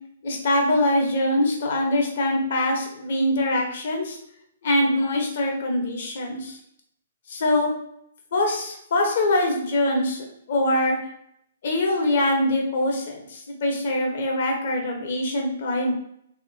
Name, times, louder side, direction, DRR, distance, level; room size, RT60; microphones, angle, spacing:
voice 1, 0.2-4.2 4.6-6.6 7.3-7.7 8.3-11.0 11.6-15.9, left 1 dB, 55° left, 1 dB, 0.9 m, -23 dB
3.5 x 2.9 x 2.6 m, 0.72 s
figure-of-eight pair, 125°, 0 cm